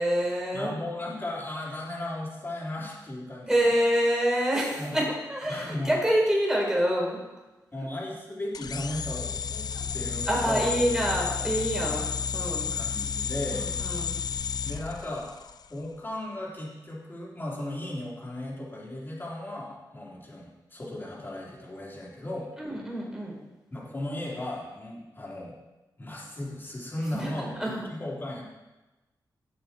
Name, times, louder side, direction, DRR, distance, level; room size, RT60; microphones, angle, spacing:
voice 1, 0.0-0.8 3.5-7.2 7.9-8.0 9.7-9.8 10.2-12.7 13.5-14.1 22.6-23.4 27.1-27.9, equal, 10° right, -3 dB, 4.5 m, -27 dB
voice 2, 0.5-3.7 4.8-5.1 5.5-6.0 7.7-9.7 9.9-10.8 11.9-12.0 12.7-13.7 14.6-15.3 15.7-22.5 23.7-25.6 26.0-27.6 27.9-28.4, left 1 dB, 30° left, -4 dB, 3.6 m, -36 dB
sound 1, 8.5-15.7, left 7 dB, 60° left, 0.4 m, -32 dB
17.0 x 6.8 x 4.5 m, 1.1 s
wide cardioid pair, 90°, 8 cm